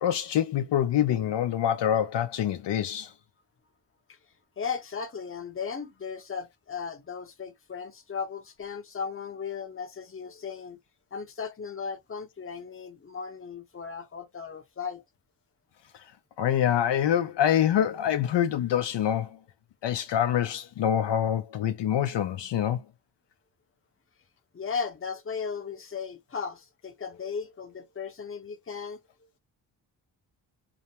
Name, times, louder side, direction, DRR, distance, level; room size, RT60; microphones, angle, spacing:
voice 1, 0.0-3.1 16.4-19.4 19.8-22.8, left 10 dB, 65° left, 0.6 m, -25 dB
voice 2, 4.6-10.8 11.1-15.0 24.5-29.0, left 6 dB, 30° left, 0.8 m, -36 dB
2.5 x 2.1 x 2.9 m
cardioid pair, 70°, 45 cm